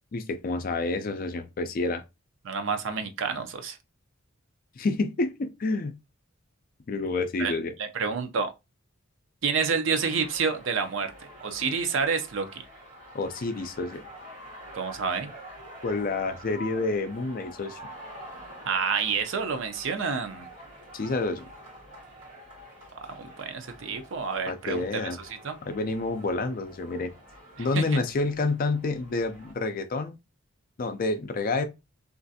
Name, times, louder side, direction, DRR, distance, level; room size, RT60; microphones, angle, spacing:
voice 1, 0.1-2.0 4.8-5.9 6.9-7.7 13.1-14.0 15.8-17.8 20.9-21.4 24.5-25.2 25.6-27.1 27.6-30.2 30.8-31.6, left 3 dB, 40° left, 0.4 m, -28 dB
voice 2, 2.4-3.8 7.4-8.5 9.4-11.1 11.4-12.6 14.7-15.3 18.7-20.5 23.1-25.6 27.6-27.8, right 5 dB, 60° right, 0.5 m, -29 dB
sound 1, 10.0-29.5, equal, 35° right, 1.8 m, -47 dB
3.1 x 2.5 x 2.6 m
head